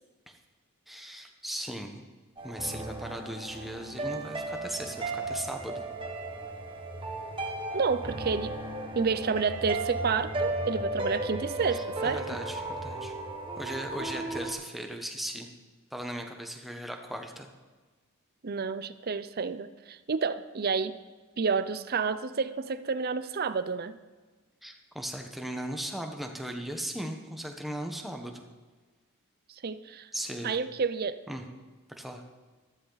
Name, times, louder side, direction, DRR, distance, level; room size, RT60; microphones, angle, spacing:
voice 1, 0.9-2.0 2.4-5.9 11.7-13.2 13.6-15.5 15.9-17.5 24.6-28.5 30.1-30.6 31.3-31.4 32.0-32.2, equal, ahead, 3 dB, 1.1 m, -38 dB
sound 1, 2.4-14.5, right 2 dB, 25° right, 1.4 m, -35 dB
voice 2, 7.7-8.5 8.9-12.2 18.4-21.0 21.4-24.0 29.6-30.1 30.4-31.2, right 5 dB, 45° right, 13 dB, 0.5 m, -30 dB
15.0 x 13.0 x 4.0 m, 1.3 s
head